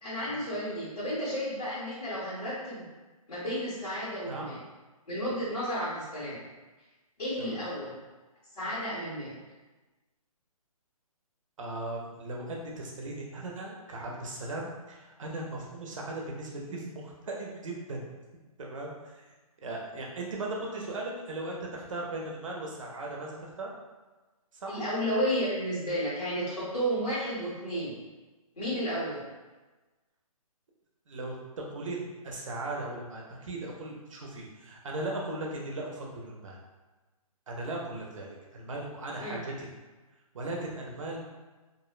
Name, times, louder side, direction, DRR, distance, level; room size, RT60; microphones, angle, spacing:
voice 1, 0.0-2.8 3.3-4.6 5.1-6.4 7.2-7.9 8.6-9.4 24.7-28.0 28.5-29.2 39.2-39.4, equal, 80° left, -9 dB, 1.2 m, -32 dB
voice 2, 11.6-18.0 18.6-19.3 19.6-23.7 24.5-24.8 31.1-36.6 37.5-39.7 40.3-41.2, right 2 dB, 60° right, -1 dB, 0.6 m, -38 dB
2.5 x 2.1 x 2.3 m, 1.2 s
hypercardioid pair, 160°, 19 cm